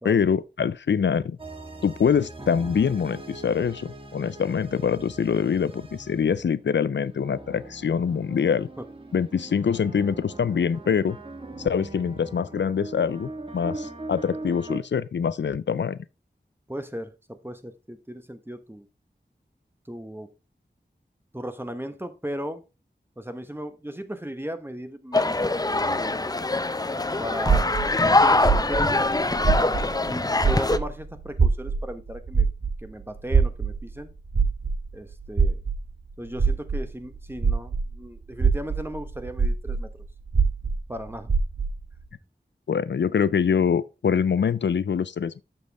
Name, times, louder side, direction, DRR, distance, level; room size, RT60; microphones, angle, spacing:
voice 1, 0.0-1.4 1.8-8.7 9.1-11.2 11.6-16.0 42.7-45.4, left 7 dB, 85° left, 0.4 m, -24 dB
sound 1, 1.4-6.6 7.0-14.8, right 2 dB, 30° right, 1.4 m, -40 dB
voice 2, 16.7-18.9 19.9-20.3 21.3-22.6 23.2-25.4 27.2-27.7 28.2-32.5 32.8-34.1 34.9-35.6 36.2-39.9 40.9-41.3, equal, 10° right, 1.0 m, -36 dB
sound 2, 25.1-30.8, left 2 dB, 20° left, 0.5 m, -23 dB
sound 3, 27.5-30.1 30.4-37.9 38.3-41.8, right 5 dB, 70° right, 1.1 m, -24 dB
7.2 x 6.6 x 3.4 m
wide cardioid pair, 60°, 18 cm